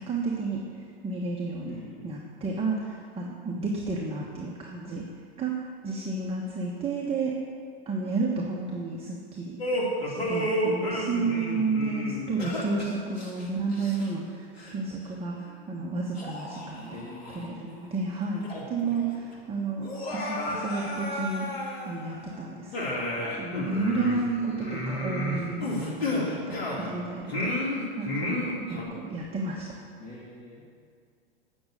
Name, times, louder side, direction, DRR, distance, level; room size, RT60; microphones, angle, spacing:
voice 1, 0.0-1.8 2.0-5.0 5.4-7.3 7.9-9.6 10.0-15.4 15.7-17.0 17.3-23.0 23.4-29.6, right 3 dB, 20° right, -2 dB, 1.3 m, -31 dB
voice 2, 1.7-2.3 10.9-11.1 16.8-17.7 23.1-23.4 30.0-30.7, left 2 dB, 25° left, -6 dB, 2.1 m, -45 dB
sound 1, 9.6-14.3 14.6-14.8 15.4-15.5 16.1-17.4 17.8-17.9 18.4-18.9 19.2-19.3 19.8-22.2 22.7-27.0 27.3-28.8, left 1 dB, 90° left, 2.5 m, -32 dB
8.6 x 6.4 x 8.4 m, 2.1 s
hypercardioid pair, 100°, 30 cm